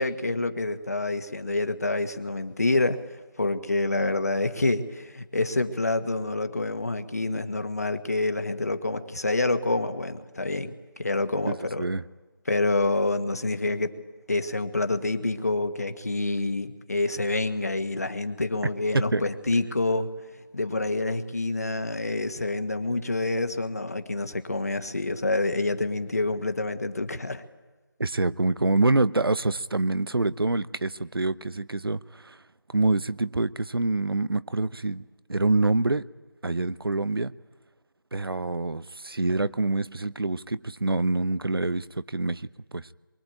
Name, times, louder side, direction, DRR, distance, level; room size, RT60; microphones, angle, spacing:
voice 1, 0.0-3.0 3.4-11.8 12.5-13.9 14.3-20.1 20.5-27.4, left 2 dB, 45° left, 1.5 m, -27 dB
voice 2, 11.5-12.1 18.9-19.2 28.0-32.4 32.7-36.0 36.4-37.3 38.1-42.9, right 2 dB, 80° right, 1.0 m, -26 dB
26.5 x 23.0 x 9.0 m
figure-of-eight pair, 175°, 12 cm